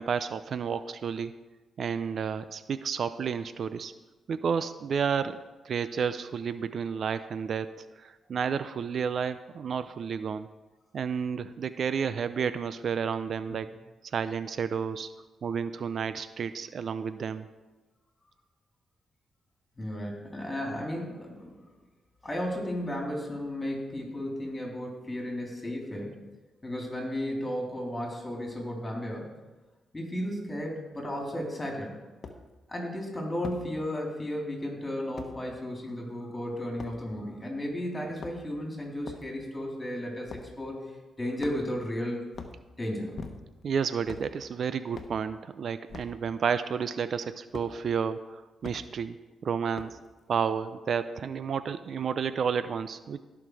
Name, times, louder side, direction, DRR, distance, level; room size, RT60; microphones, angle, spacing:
voice 1, 0.0-1.3 1.8-3.9 4.3-10.5 10.9-13.7 14.1-15.1 15.4-17.5 43.6-49.2 49.4-50.0 50.3-53.2, right 6 dB, 60° right, 13 dB, 0.4 m, -31 dB
voice 2, 19.8-21.6 22.2-26.1 26.6-29.3 29.9-32.0 32.7-42.3 42.8-43.2, left 1 dB, 20° left, 0 dB, 3.4 m, -34 dB
sound 1, 31.2-31.3 32.2-32.4 33.4-33.6 35.2-35.3 36.8-37.0 38.0-38.6 39.0-39.3 40.3-40.5 41.4-41.8 42.3-42.6 43.1-43.6 44.0-44.3 44.9-45.2 45.9-46.2 47.5-47.7 48.6-48.8 49.7-50.1, left 4 dB, 50° left, 1.1 m, -42 dB
16.5 x 5.9 x 4.7 m, 1.2 s
cardioid pair, 90°, 0 cm